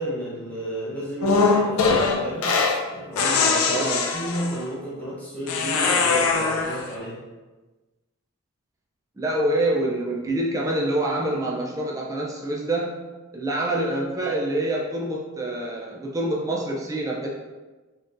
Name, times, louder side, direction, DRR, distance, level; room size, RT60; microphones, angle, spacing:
voice 1, 0.0-2.6 2.9-7.2, right 1 dB, 5° left, -7 dB, 1.0 m, -32 dB
sound 1, 1.2-2.8 3.2-4.6 5.5-6.9, left 4 dB, 80° left, 0.4 m, -22 dB
voice 2, 3.7-4.0 9.2-12.9 13.3-17.3, right 1 dB, 15° right, -3 dB, 0.4 m, -26 dB
4.3 x 3.0 x 2.5 m, 1.2 s
head